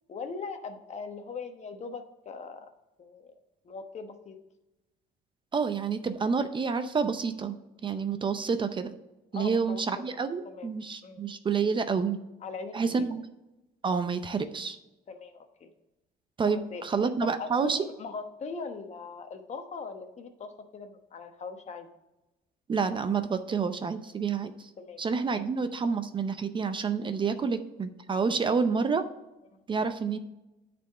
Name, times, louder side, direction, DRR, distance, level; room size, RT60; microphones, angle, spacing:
voice 1, 0.1-2.7 3.0-3.3 3.6-4.4 9.3-9.8 10.4-10.7 11.0-11.2 12.4-13.1 15.1-15.7 16.4-16.8 17.2-21.9 24.8-25.0 25.4-25.5 27.2-27.4 28.4-28.6, left 4 dB, 40° left, 7 dB, 1.1 m, -40 dB
voice 2, 5.5-8.9 9.3-12.2 12.7-13.2 13.8-14.8 16.4-17.8 22.7-24.7 25.0-29.0 29.7-30.2, right 5 dB, 30° right, 10 dB, 0.6 m, -29 dB
9.2 x 4.3 x 5.5 m, 0.98 s
cardioid pair, 110°, 17 cm